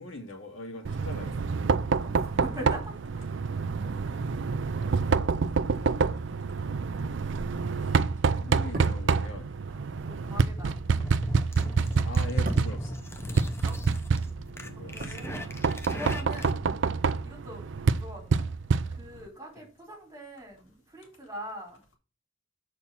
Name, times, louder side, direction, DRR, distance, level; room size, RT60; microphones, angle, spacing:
voice 1, 0.0-1.5 4.7-5.4 7.8-9.5 11.8-13.0 14.6-15.2, left 2 dB, 90° left, 2.2 m, -42 dB
Knock, 0.8-19.3, right 5 dB, 65° right, 0.4 m, -27 dB
voice 2, 2.0-3.4 9.7-10.8 13.4-13.8 14.9-15.4 15.9-16.6 17.2-17.7 17.9-18.5 18.9-21.8, equal, 15° right, 3.7 m, -43 dB
sound 1, 8.5-13.9 14.1-16.0 16.2-16.4, right 1 dB, 50° right, 1.3 m, -43 dB
sound 2, 10.3-16.7, left 1 dB, 15° left, 0.8 m, -38 dB
7.2 x 4.5 x 5.5 m
head